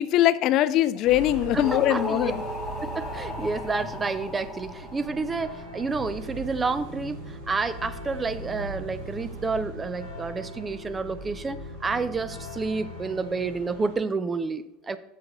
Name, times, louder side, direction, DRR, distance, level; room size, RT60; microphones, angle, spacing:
voice 1, 0.0-2.4, left 13 dB, 55° left, 15 dB, 0.3 m, -22 dB
sound 1, 1.0-14.0, right 1 dB, 80° right, 2.6 m, -39 dB
voice 2, 1.5-2.3 2.8-15.0, right 4 dB, 20° right, 14 dB, 0.4 m, -30 dB
sound 2, 1.6-5.8, equal, 15° left, 0.9 m, -36 dB
7.9 x 6.6 x 3.0 m, 0.94 s
supercardioid pair, 130°, 0 cm